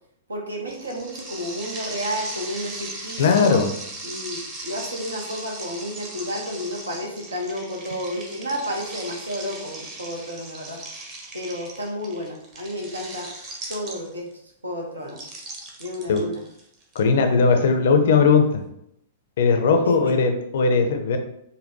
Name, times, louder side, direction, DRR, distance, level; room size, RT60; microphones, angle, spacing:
voice 1, 0.3-3.6 4.0-10.8 11.3-13.3 13.7-14.3 14.6-15.3 15.8-16.4 19.8-20.1, equal, 80° right, 0 dB, 0.8 m, -31 dB
sound 1, 0.7-14.3 15.1-17.0, right 2 dB, 30° right, 1.0 m, -38 dB
voice 2, 3.2-3.7 16.1-16.2 16.9-18.6 19.4-21.2, left 4 dB, 60° left, 6 dB, 0.5 m, -18 dB
5.3 x 2.2 x 2.7 m, 0.75 s
figure-of-eight pair, 100°, 0 cm